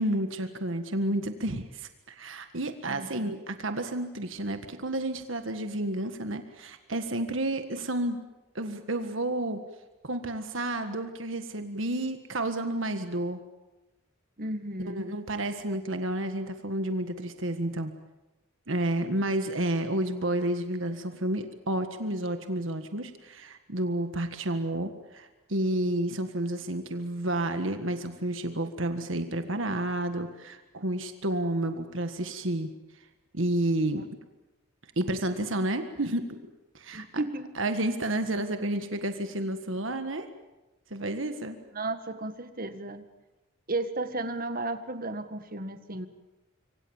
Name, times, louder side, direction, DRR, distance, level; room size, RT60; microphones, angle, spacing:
voice 1, 0.0-8.2 8.5-9.6 10.0-13.4 14.9-17.9 18.7-32.7 33.3-34.0 35.0-36.4 36.7-37.2 37.6-40.3 40.9-41.6, right 1 dB, 70° right, 8 dB, 1.7 m, -30 dB
voice 2, 2.8-3.3 14.4-15.1 36.9-37.5 41.7-43.0 43.7-46.1, right 2 dB, 45° right, 9 dB, 1.8 m, -34 dB
26.0 x 25.0 x 7.3 m, 1.1 s
head